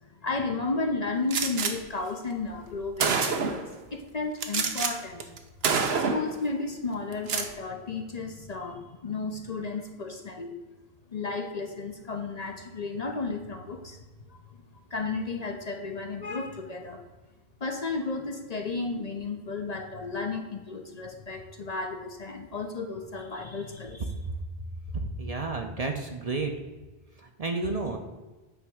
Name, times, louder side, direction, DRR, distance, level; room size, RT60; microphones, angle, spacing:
voice 1, 0.2-3.6 3.9-5.2 6.0-10.6 11.1-14.0 14.3-14.4 14.7-17.0 17.6-24.1, left 3 dB, 45° left, 4 dB, 0.7 m, -33 dB
Gunshot gunfire, 1.3-1.7 2.6-2.7 3.0-3.7 4.4-4.9 5.2-5.4 5.6-6.3 7.1-7.5, right 5 dB, 75° right, 1.0 m, -26 dB
voice 2, 24.9-26.5 27.2-28.0, right 3 dB, 40° right, 4 dB, 0.7 m, -31 dB
9.1 x 3.4 x 6.2 m, 1.2 s
omnidirectional pair, 1.1 m